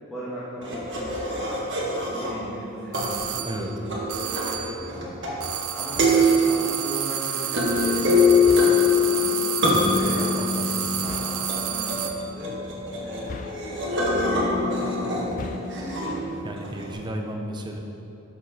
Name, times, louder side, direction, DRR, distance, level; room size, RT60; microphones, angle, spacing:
voice 1, 0.1-1.8 2.1-5.1 5.7-9.4 9.9-10.3 10.7-12.6 13.0-16.2, equal, ahead, -12 dB, 1.6 m, -38 dB
sound 1, 0.6-2.6 2.9-5.7 5.9-16.9, left 2 dB, 55° right, 1.6 m, -24 dB
sound 2, 2.9-3.6 4.1-4.8 5.4-12.3, right 10 dB, 85° right, 0.6 m, -30 dB
sound 3, 5.9-6.4 8.4-9.0 11.0-11.5 13.2-14.0 15.2-15.9, left 3 dB, 40° left, 0.4 m, -40 dB
voice 2, 9.6-11.1 16.4-17.8, right 1 dB, 20° right, 2 dB, 0.7 m, -33 dB
11.0 x 6.7 x 4.3 m, 2.8 s
head